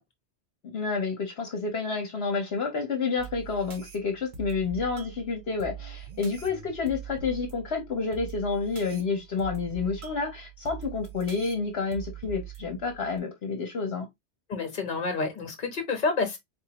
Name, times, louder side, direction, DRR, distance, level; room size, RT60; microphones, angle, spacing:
voice 1, 0.7-14.1, left 4 dB, 65° left, 1.1 m, -29 dB
sound 1, 3.2-13.2, right 7 dB, 50° right, 0.9 m, -43 dB
voice 2, 14.5-16.4, left 4 dB, 45° left, 1.2 m, -29 dB
4.2 x 2.6 x 2.9 m
omnidirectional pair, 1.2 m